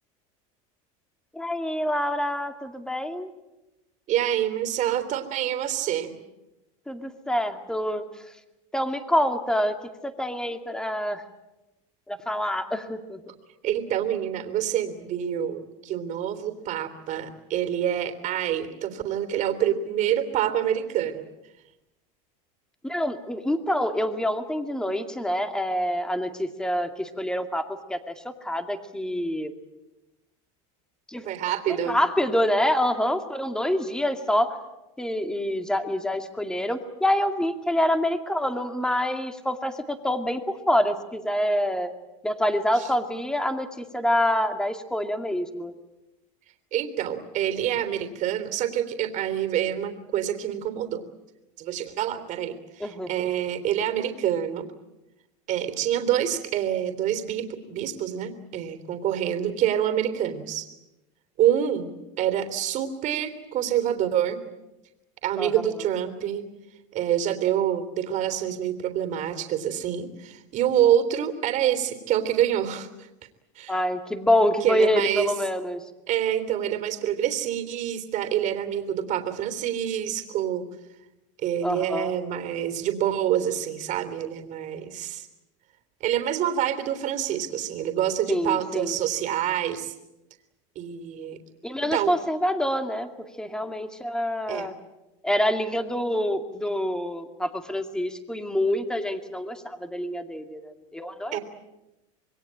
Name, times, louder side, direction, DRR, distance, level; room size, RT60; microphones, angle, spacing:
voice 1, 1.3-3.3 6.9-8.3 8.7-11.2 12.1-13.2 22.8-29.5 31.1-31.3 31.7-34.6 35.0-41.9 42.2-45.7 52.8-53.3 65.4-65.8 73.7-75.8 81.6-82.1 88.3-89.0 91.6-93.1 93.4-94.7 95.2-101.4, left 1 dB, 5° left, 7 dB, 2.3 m, -26 dB
voice 2, 4.1-6.1 13.6-21.3 31.2-32.0 42.8-42.9 46.7-51.0 51.6-54.7 55.5-60.7 61.4-61.9 62.2-64.4 65.2-66.4 66.9-72.9 73.5-73.7 74.6-75.3 76.1-80.7 81.4-85.3 86.0-89.9 90.7-91.4 91.9-92.1 94.5-94.7 101.3-101.4, right 10 dB, 45° right, 9 dB, 3.4 m, -26 dB
26.5 x 22.0 x 8.8 m, 0.95 s
supercardioid pair, 130°, 18 cm